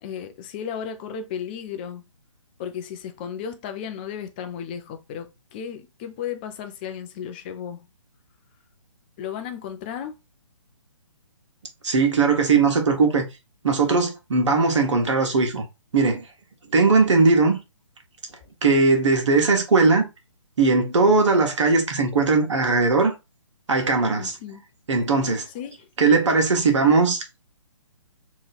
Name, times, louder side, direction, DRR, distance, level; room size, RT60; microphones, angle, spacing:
voice 1, 0.0-2.1 2.6-7.9 9.2-10.1 24.1-24.6 25.5-25.9, left 8 dB, 20° left, 0.4 m, -34 dB
voice 2, 11.8-13.3 13.6-15.6 15.9-16.2 16.7-17.6 18.6-20.0 20.6-23.1 23.7-24.4 24.9-25.4 26.0-27.4, right 4 dB, 65° right, 1.1 m, -19 dB
3.0 x 2.6 x 3.9 m
hypercardioid pair, 145°, 16 cm